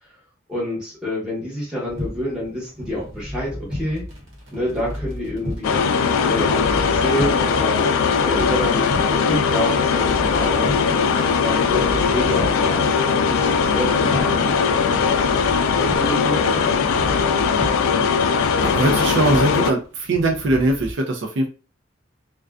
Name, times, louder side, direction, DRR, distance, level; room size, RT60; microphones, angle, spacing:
voice 1, 0.5-4.0 4.5-5.8 6.2-7.9 8.2-15.3 15.8-17.6, left 1 dB, 5° right, -6 dB, 1.0 m, -28 dB
sound 1, 1.9-20.9, left 1 dB, 85° right, 0.9 m, -34 dB
sound 2, 5.6-19.7, left 5 dB, 90° left, 0.3 m, -19 dB
voice 2, 18.6-21.5, right 2 dB, 60° right, 2 dB, 0.4 m, -21 dB
2.4 x 2.2 x 2.3 m, 0.36 s
head